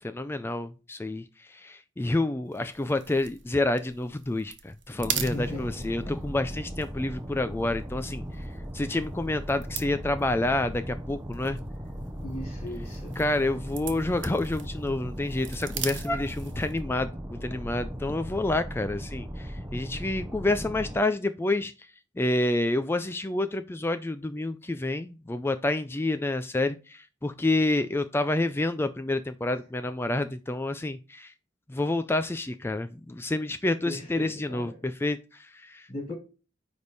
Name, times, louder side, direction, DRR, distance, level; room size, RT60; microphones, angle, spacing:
voice 1, 0.0-8.5 8.7-11.6 13.2-21.7 22.2-31.3 31.7-36.1, left 2 dB, 10° left, 10 dB, 0.3 m, -29 dB
sound 1, 2.5-16.9, right 9 dB, 70° right, 1.0 m, -42 dB
sound 2, 5.0-21.0, equal, 10° right, 0.7 m, -38 dB
voice 2, 5.1-6.2 12.2-13.2 19.7-19.9 33.8-34.8 35.9-36.1, left 1 dB, 35° left, 0 dB, 4.4 m, -38 dB
9.6 x 3.5 x 4.0 m, 0.32 s
head